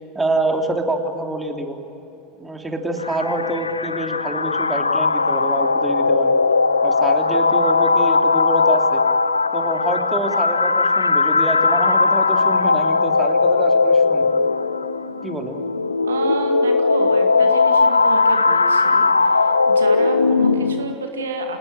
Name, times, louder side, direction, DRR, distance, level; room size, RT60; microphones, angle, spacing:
voice 1, 0.1-1.8 2.4-6.3 6.8-9.0 9.5-14.4 15.2-15.6, right 1 dB, 10° right, 3 dB, 3.1 m, -26 dB
sound 1, 3.0-20.9, left 4 dB, 85° left, 0.6 m, -18 dB
voice 2, 16.0-21.6, right 3 dB, 75° right, 5 dB, 2.2 m, -30 dB
27.0 x 19.0 x 9.1 m, 2.8 s
figure-of-eight pair, 80°, 0 cm